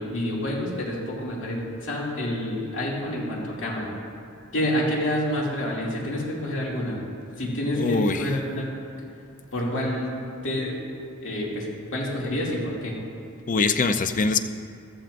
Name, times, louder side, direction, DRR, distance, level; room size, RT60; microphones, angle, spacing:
voice 1, 0.0-3.9 4.5-7.0 7.4-8.7 9.5-10.2 10.4-10.8 11.2-13.0, left 1 dB, 65° left, -4 dB, 2.5 m, -28 dB
voice 2, 7.8-8.3 13.5-14.4, left 4 dB, 40° left, 8 dB, 0.5 m, -23 dB
15.0 x 13.0 x 2.6 m, 2.4 s
head